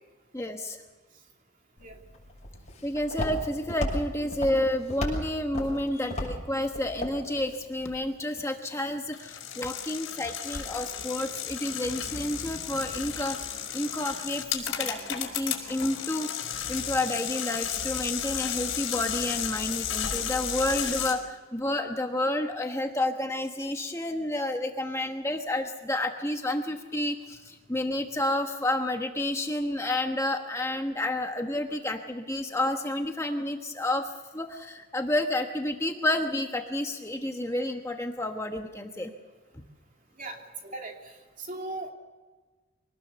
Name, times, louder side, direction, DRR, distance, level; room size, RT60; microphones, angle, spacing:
voice 1, 0.3-0.8 2.8-39.1, left 1 dB, 15° left, 4 dB, 1.1 m, -30 dB
Walk footsteps, 1.8-8.0, equal, 30° left, 6.5 m, -36 dB
sound 1, 9.1-21.1, left 9 dB, 65° left, 4.8 m, -33 dB
voice 2, 40.2-41.1 41.4-41.9, right 2 dB, 40° right, 2 dB, 2.9 m, -38 dB
24.5 x 19.0 x 6.9 m, 1.4 s
head